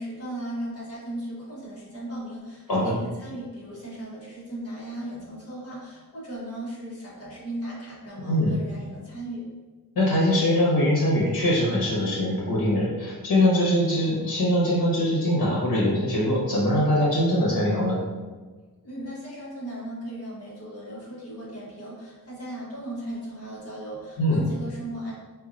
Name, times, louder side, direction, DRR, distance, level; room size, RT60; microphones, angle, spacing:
voice 1, 0.0-9.4 18.8-25.1, right 1 dB, 40° left, -7 dB, 1.4 m, -37 dB
voice 2, 9.9-18.0 24.2-24.4, left 1 dB, 65° left, -5 dB, 1.4 m, -22 dB
4.7 x 2.6 x 2.6 m, 1.3 s
wide cardioid pair, 170°, 36 cm